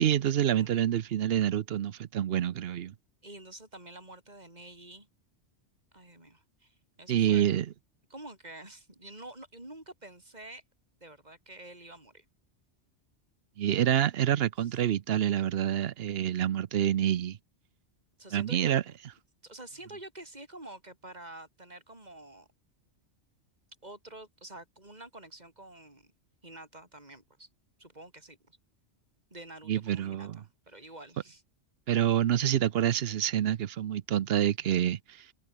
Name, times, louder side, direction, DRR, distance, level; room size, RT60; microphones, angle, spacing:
voice 1, 0.0-2.9 7.1-7.7 13.6-17.4 18.3-18.8 29.7-30.4 31.9-35.3, right 10 dB, 60° right, 0.8 m, -27 dB
voice 2, 1.1-1.5 3.2-5.1 5.9-7.5 8.1-10.6 11.0-12.2 14.6-14.8 18.2-18.9 19.4-22.5 23.8-26.1 26.4-27.5 27.8-28.6 29.3-31.4, right 1 dB, 35° right, 6.2 m, -48 dB
omnidirectional pair, 1.2 m